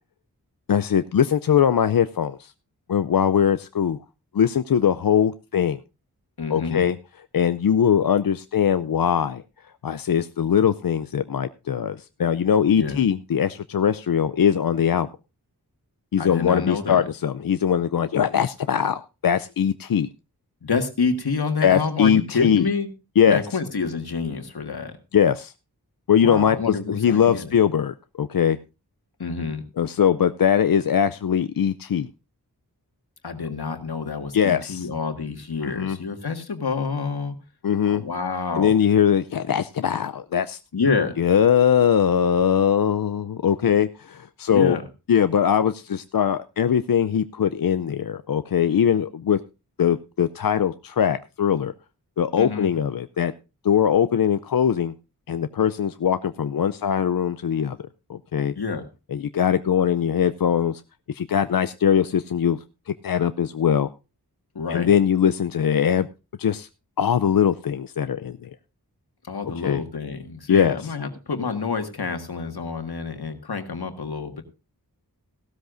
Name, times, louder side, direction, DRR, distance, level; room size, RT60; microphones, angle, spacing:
voice 1, 0.7-2.5 2.9-4.0 4.3-5.8 6.5-7.0 7.3-9.4 9.8-15.1 16.1-20.1 21.6-22.7 23.2-23.4 25.1-25.5 26.1-28.6 29.8-32.1 34.3-34.9 35.6-36.0 37.6-38.0 38.6-40.6 41.2-44.8 45.1-49.4 49.8-51.7 52.2-53.3 53.6-54.9 55.3-57.8 58.1-58.5 59.1-60.8 61.1-62.6 63.0-63.9 64.7-66.1 66.4-66.7 67.0-68.5 69.6-69.8 70.5-70.8, left 8 dB, 65° left, 12 dB, 0.5 m, -21 dB
voice 2, 6.4-6.9 12.8-13.0 16.2-17.1 20.6-22.9 23.3-24.9 26.2-27.5 29.2-29.6 33.2-37.4 37.8-38.7 40.7-41.2 44.5-44.8 52.4-52.7 58.6-58.9 64.6-64.9 69.2-74.4, left 4 dB, 80° left, 6 dB, 1.8 m, -28 dB
16.0 x 13.0 x 2.6 m, 0.29 s
wide cardioid pair, 60°, 38 cm